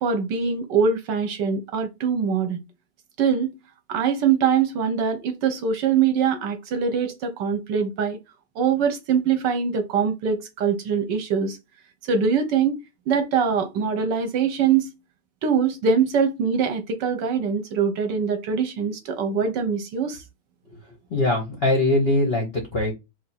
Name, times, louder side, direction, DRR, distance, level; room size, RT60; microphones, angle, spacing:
voice 1, 0.0-2.6 3.2-3.6 3.9-8.2 8.6-11.6 12.1-12.8 13.1-14.9 15.4-20.2, right 6 dB, 70° right, 1.2 m, -23 dB
voice 2, 21.1-22.9, left 2 dB, 55° left, 0.6 m, -21 dB
3.4 x 2.5 x 4.1 m
omnidirectional pair, 2.2 m